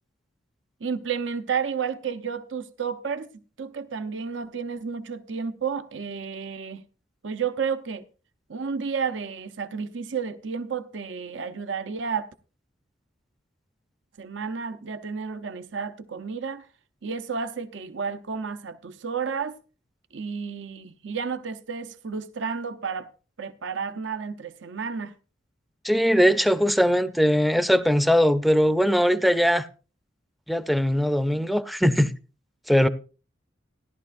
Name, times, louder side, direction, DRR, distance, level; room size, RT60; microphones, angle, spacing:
voice 1, 0.8-3.3 3.6-6.8 7.2-8.1 8.5-12.3 14.2-16.7 17.0-19.6 20.1-23.1 23.4-25.1, right 6 dB, 80° right, 0.7 m, -31 dB
voice 2, 25.8-29.7 30.5-32.1 32.7-32.9, equal, ahead, 0.5 m, -20 dB
16.5 x 11.5 x 2.5 m
head